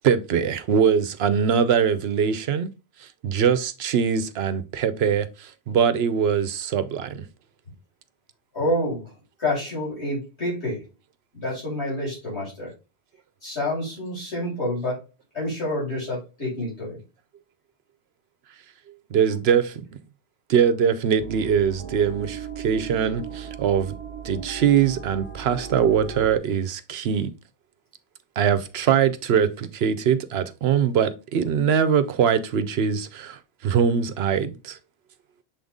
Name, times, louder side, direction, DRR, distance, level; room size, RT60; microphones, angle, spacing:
voice 1, 0.0-2.7 3.2-7.3 19.1-19.8 20.5-24.0 24.2-27.3 28.4-34.8, right 7 dB, 70° right, 0.9 m, -22 dB
voice 2, 8.5-9.0 9.4-10.8 11.3-12.7 13.4-15.0 15.3-17.0, left 1 dB, 75° left, 4.5 m, -28 dB
sound 1, 21.2-26.4, right 6 dB, 25° right, 1.3 m, -37 dB
6.9 x 3.9 x 3.6 m
omnidirectional pair, 1.1 m